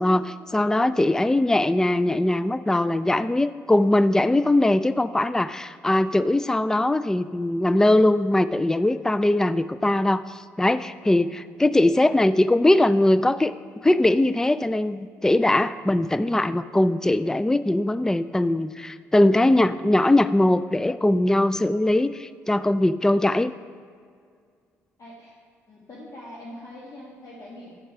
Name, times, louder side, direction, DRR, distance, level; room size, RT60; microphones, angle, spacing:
voice 1, 0.0-10.2 10.6-13.5 13.8-23.5, left 1 dB, 10° left, 14 dB, 0.3 m, -21 dB
voice 2, 25.0-25.3 25.7-27.8, left 1 dB, 50° left, -5 dB, 1.6 m, -43 dB
10.0 x 4.6 x 5.6 m, 2.1 s
hypercardioid pair, 50°, 7 cm